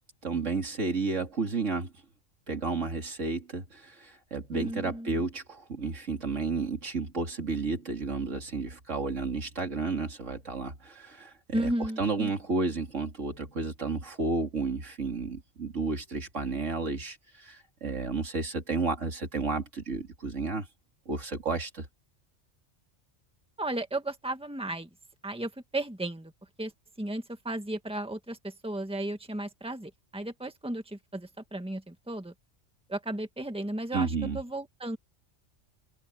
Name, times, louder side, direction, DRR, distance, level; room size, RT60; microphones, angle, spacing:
voice 1, 0.2-1.9 2.5-11.3 11.6-11.7 12.0-20.7 21.1-21.9 33.9-34.4, right 3 dB, 75° right, 3.1 m, -32 dB
voice 2, 4.5-5.2 11.5-12.3 23.6-24.9 25.2-26.3 26.6-26.7 27.0-32.3 32.9-35.0, right 1 dB, 5° right, 1.8 m, -34 dB
omnidirectional pair, 1.3 m